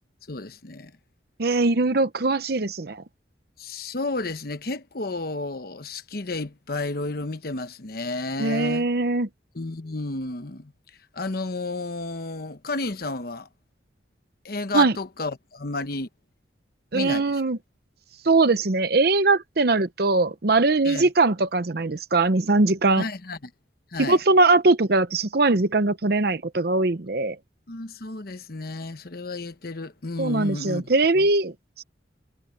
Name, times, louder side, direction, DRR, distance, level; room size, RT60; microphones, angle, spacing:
voice 1, 0.3-0.9 3.6-8.9 9.5-10.7 11.1-13.5 14.4-16.1 16.9-17.4 20.8-21.1 23.0-23.4 23.9-24.2 27.7-31.3, left 3 dB, 55° left, 1.1 m, -32 dB
voice 2, 1.4-3.0 8.4-9.3 14.7-14.9 16.9-17.6 18.2-23.0 24.1-27.4 30.2-31.8, right 3 dB, 55° right, 0.8 m, -21 dB
head